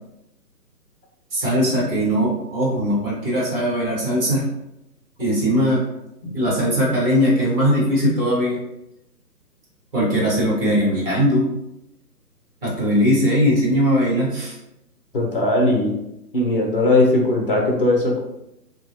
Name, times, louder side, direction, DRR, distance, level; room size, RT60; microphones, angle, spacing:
voice 1, 1.3-4.4 5.2-5.8 6.3-8.6 9.9-11.5 12.6-14.5, equal, 35° right, -6 dB, 1.3 m, -20 dB
voice 2, 15.1-15.9 16.3-18.2, left 2 dB, 35° left, 0 dB, 0.7 m, -19 dB
2.9 x 2.3 x 2.8 m, 0.86 s
figure-of-eight pair, 150°, 49 cm